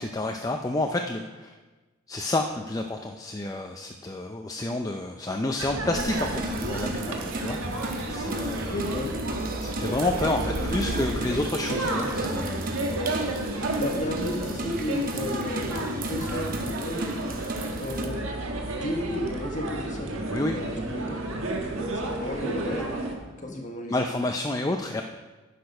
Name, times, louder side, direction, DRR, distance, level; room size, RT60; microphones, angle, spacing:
voice 1, 0.0-1.6 2.1-7.6 8.1-8.7 9.6-12.7 20.3-20.6 23.5-25.0, left 2 dB, 15° left, 4 dB, 0.4 m, -29 dB
sound 1, 5.6-23.2, right 1 dB, 85° right, 1.4 m, -31 dB
sound 2, 6.0-18.1, right 2 dB, 45° right, 0.9 m, -35 dB
voice 2, 8.7-9.1 10.6-11.4 13.8-17.1 17.8-18.2 18.7-20.1 20.5-21.2 22.0-22.9 23.4-23.9, left 1 dB, 40° left, 2 dB, 1.4 m, -33 dB
10.5 x 6.7 x 5.3 m, 1.2 s
head